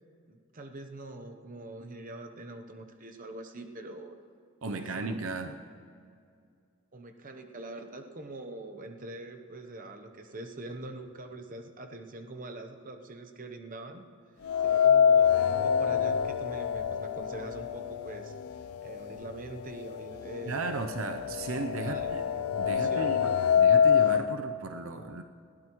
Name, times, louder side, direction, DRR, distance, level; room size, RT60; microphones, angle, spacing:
voice 1, 0.3-4.2 4.7-5.6 6.9-14.1 14.6-18.3 18.8-20.7 21.5-22.1 22.8-23.3, right 2 dB, 40° right, 5 dB, 0.9 m, -44 dB
voice 2, 4.6-5.6 20.5-22.2 22.6-25.2, right 3 dB, 65° right, 6 dB, 0.7 m, -35 dB
sound 1, 14.5-18.5 18.9-19.0 19.9-20.0 20.4-24.3, left 7 dB, 80° left, 0.5 m, -25 dB
20.5 x 16.0 x 3.1 m, 2.3 s
head